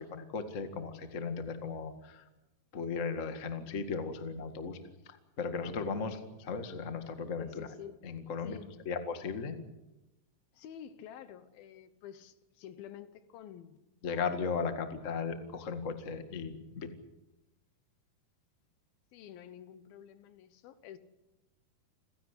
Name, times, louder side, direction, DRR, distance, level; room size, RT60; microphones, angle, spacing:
voice 1, 0.0-2.2 2.7-4.8 5.0-7.7 8.0-8.6 8.8-9.5 14.0-16.9, left 5 dB, 50° left, 8 dB, 0.9 m, -36 dB
voice 2, 7.4-8.0 8.4-8.7 10.5-13.8 14.1-14.4 19.1-21.0, left 10 dB, 70° left, 12 dB, 2.7 m, -49 dB
28.0 x 16.0 x 8.2 m, 1.0 s
omnidirectional pair, 4.7 m